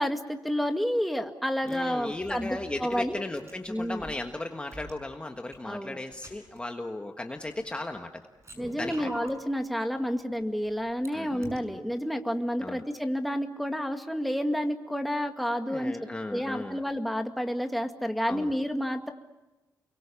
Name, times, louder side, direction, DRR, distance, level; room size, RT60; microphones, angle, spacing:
voice 1, 0.0-3.2 3.7-4.1 5.6-6.0 8.6-19.1, equal, ahead, 5 dB, 2.0 m, -30 dB
voice 2, 1.7-8.2 8.7-9.1 11.1-11.5 12.6-12.8 15.7-16.8 18.3-18.5, left 2 dB, 15° left, 5 dB, 1.5 m, -36 dB
sound 1, 1.7-1.8 2.1-4.1 4.7-4.9 5.5-5.6 6.1-6.6 7.4-8.0 8.4-9.4 10.1-11.1 11.4-11.6, right 1 dB, 40° right, 6.6 m, -45 dB
30.0 x 23.0 x 7.1 m, 1.1 s
cardioid pair, 105°, 7 cm